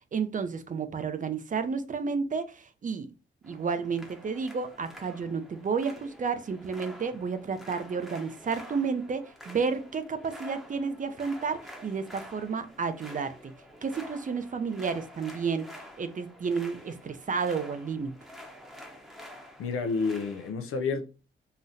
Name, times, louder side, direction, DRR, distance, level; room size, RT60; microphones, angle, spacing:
voice 1, 0.1-3.1 3.4-13.5 13.8-15.7 16.0-18.2, right 5 dB, 40° right, 0.5 m, -31 dB
sound 1, 3.4-20.5, equal, ahead, 0.8 m, -48 dB
voice 2, 19.6-21.1, left 4 dB, 90° left, 0.5 m, -29 dB
3.9 x 2.0 x 2.6 m
cardioid pair, 70°, 21 cm